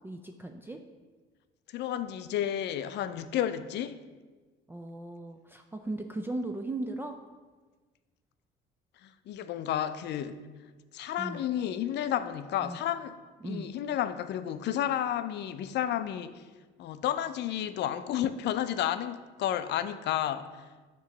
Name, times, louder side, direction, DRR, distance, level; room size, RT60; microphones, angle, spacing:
voice 1, 0.0-0.8 4.7-7.2 11.2-11.4 12.6-12.8 13.4-13.7, right 2 dB, 10° right, 0.3 m, -37 dB
voice 2, 1.7-4.0 9.0-10.4 10.9-13.2 13.4-16.4 16.8-20.5, left 11 dB, 55° left, 0.4 m, -31 dB
6.8 x 3.1 x 5.8 m
cardioid pair, 105°, 21 cm